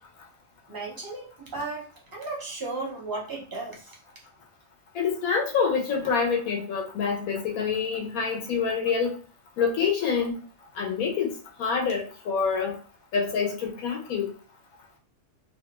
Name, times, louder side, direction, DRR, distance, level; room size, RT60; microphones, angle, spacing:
voice 1, 0.7-4.0, right 3 dB, 25° right, -2 dB, 0.5 m, -35 dB
voice 2, 4.9-9.1 9.6-10.4 10.8-11.3 11.6-12.8 13.1-14.3, left 6 dB, 80° left, 1 dB, 1.2 m, -26 dB
2.8 x 2.3 x 2.9 m, 0.39 s
omnidirectional pair, 1.5 m